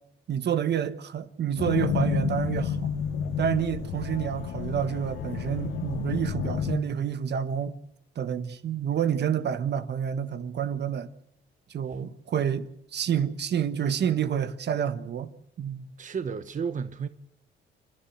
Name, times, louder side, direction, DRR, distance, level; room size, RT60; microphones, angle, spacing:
voice 1, 0.3-2.9 3.4-7.8 8.1-11.1 11.7-15.3 15.6-15.9, right 8 dB, 60° right, 1.4 m, -28 dB
sound 1, 1.6-6.8, left 7 dB, 90° left, 2.0 m, -30 dB
voice 2, 16.0-17.1, right 6 dB, 40° right, 1.1 m, -32 dB
29.0 x 11.5 x 9.5 m
cardioid pair, 90°, 20 cm